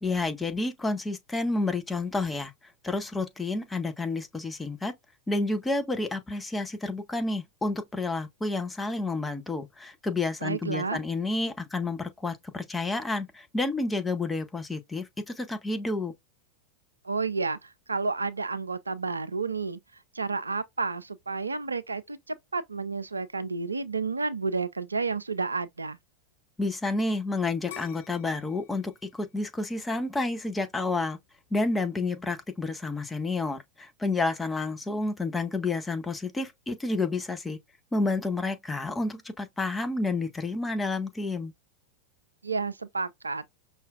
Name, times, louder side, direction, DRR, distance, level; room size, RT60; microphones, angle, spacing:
voice 1, 0.0-4.9 5.3-16.1 26.6-31.2 31.5-37.6 37.9-41.5, left 3 dB, 10° left, 0.6 m, -30 dB
voice 2, 10.4-11.0 17.0-19.8 20.1-26.0 42.4-43.4, right 4 dB, 80° right, 0.3 m, -31 dB
sound 1, 27.7-30.6 31.1-31.6, left 11 dB, 55° left, 0.5 m, -47 dB
5.5 x 2.4 x 2.3 m
figure-of-eight pair, 90°, 0 cm